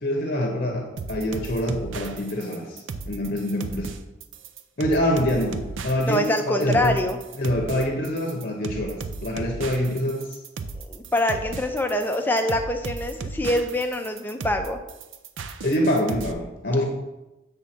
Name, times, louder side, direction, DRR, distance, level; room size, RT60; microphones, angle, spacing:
voice 1, 0.0-3.9 4.8-7.0 7.4-9.0 9.2-10.2 15.6-16.8, left 1 dB, 45° left, 1 dB, 0.8 m, -25 dB
sound 1, 1.0-16.3, right 4 dB, 70° right, 0.5 m, -35 dB
voice 2, 6.1-7.2 10.7-14.8, left 1 dB, 10° left, 4 dB, 0.4 m, -24 dB
7.4 x 3.5 x 5.8 m, 0.99 s
head